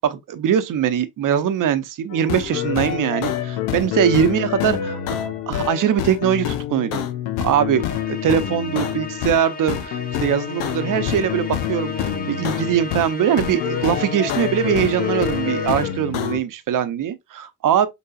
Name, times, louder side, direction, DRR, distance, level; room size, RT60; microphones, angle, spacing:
voice 1, 0.0-5.0 5.5-7.1 7.4-17.9, right 9 dB, 55° right, 0.8 m, -21 dB
sound 1, 2.1-9.4 9.7-13.1 13.4-16.4, left 10 dB, 80° left, 0.7 m, -27 dB
Musical instrument, 7.7-16.2, left 3 dB, 25° left, 1.3 m, -33 dB
5.3 x 4.0 x 2.4 m
hypercardioid pair, 45°, 38 cm